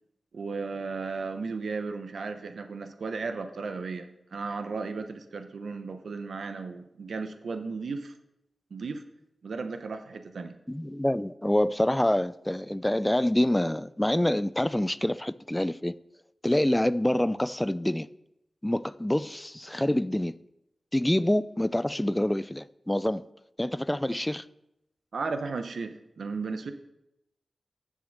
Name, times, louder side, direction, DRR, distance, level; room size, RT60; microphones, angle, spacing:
voice 1, 0.3-8.1 8.7-9.0 9.4-10.6 25.1-26.7, right 4 dB, 80° right, 0.8 m, -35 dB
voice 2, 10.7-15.9 16.4-18.1 18.6-20.3 20.9-23.2 23.6-24.4, left 1 dB, 15° left, 0.4 m, -26 dB
7.4 x 7.4 x 6.5 m
cardioid pair, 45°, 0 cm